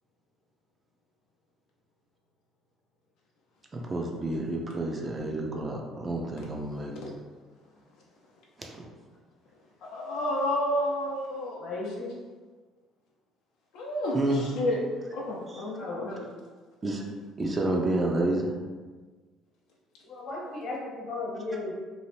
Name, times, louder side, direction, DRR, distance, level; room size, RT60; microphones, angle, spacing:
voice 1, 3.7-6.9 8.6-8.9 14.1-14.5 16.8-17.0 17.4-18.5, right 2 dB, 20° right, 0 dB, 0.4 m, -29 dB
voice 2, 9.8-11.7 13.7-14.8 15.1-16.3, left 1 dB, 75° left, -2 dB, 0.4 m, -30 dB
voice 3, 11.6-12.1 15.8-16.0 20.0-21.7, left 2 dB, 55° left, -4 dB, 1.0 m, -35 dB
2.6 x 2.0 x 3.1 m, 1.4 s
cardioid pair, 125°, 0 cm